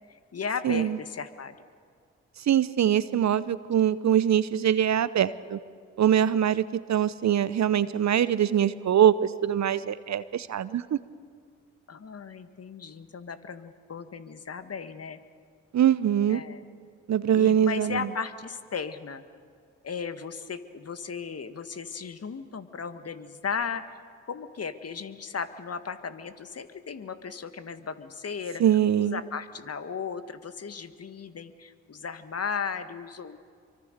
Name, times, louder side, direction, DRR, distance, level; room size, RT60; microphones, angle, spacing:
voice 1, 0.1-1.5 11.9-15.2 16.3-16.6 17.3-19.2 19.8-23.8 24.3-28.6 29.0-33.4, left 6 dB, 45° left, 11 dB, 1.7 m, -36 dB
voice 2, 0.6-1.0 2.5-5.6 6.0-11.0 15.7-16.4 17.1-18.1 28.6-29.2, right 10 dB, 55° right, 16 dB, 0.9 m, -23 dB
25.5 x 24.0 x 6.7 m, 2.1 s
hypercardioid pair, 45°, 33 cm